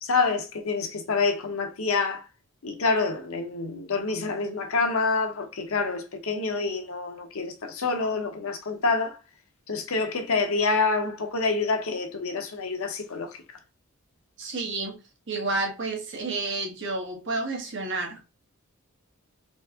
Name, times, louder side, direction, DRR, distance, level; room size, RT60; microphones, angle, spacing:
voice 1, 0.0-2.3 2.6-9.2 9.7-13.4, left 4 dB, 70° left, 0.8 m, -27 dB
voice 2, 14.4-15.0 15.3-18.2, right 3 dB, 55° right, 1.3 m, -30 dB
4.0 x 2.4 x 3.5 m
head